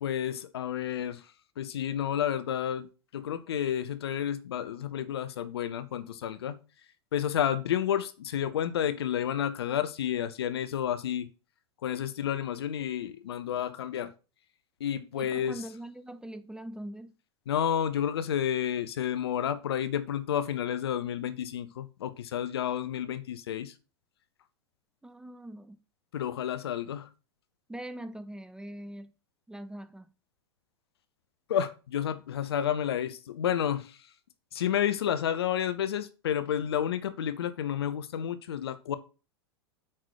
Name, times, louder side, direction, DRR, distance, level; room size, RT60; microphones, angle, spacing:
voice 1, 0.0-1.2 1.6-6.6 7.1-11.3 11.8-14.1 14.8-15.6 17.5-23.7 26.1-27.1 31.5-34.0 34.5-39.0, left 9 dB, 65° left, 0.8 m, -30 dB
voice 2, 15.1-17.2 25.0-25.8 27.7-29.1 29.5-30.1, right 1 dB, 5° right, 0.5 m, -42 dB
8.5 x 3.9 x 4.8 m
figure-of-eight pair, 90°, 14 cm